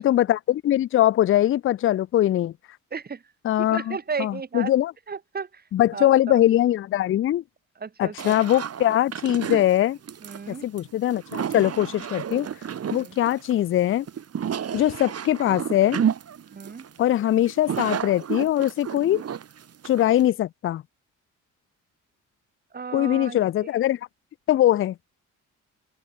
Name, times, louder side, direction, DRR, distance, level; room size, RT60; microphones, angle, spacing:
voice 1, 0.0-2.5 3.4-4.9 5.7-7.4 8.0-10.0 10.5-12.5 12.9-14.1 14.7-16.0 17.0-19.2 19.8-20.8 22.9-24.0 24.5-24.9, left 13 dB, 45° left, 0.4 m, -22 dB
voice 2, 2.9-3.2 3.6-4.7 5.1-5.6 5.9-6.4 7.8-8.4 10.2-10.7 13.0-13.2 16.5-16.9 22.7-23.5, right 5 dB, 30° right, 1.9 m, -34 dB
sound 1, 8.2-20.3, right 8 dB, 55° right, 3.9 m, -31 dB
open air
cardioid pair, 90°, 30 cm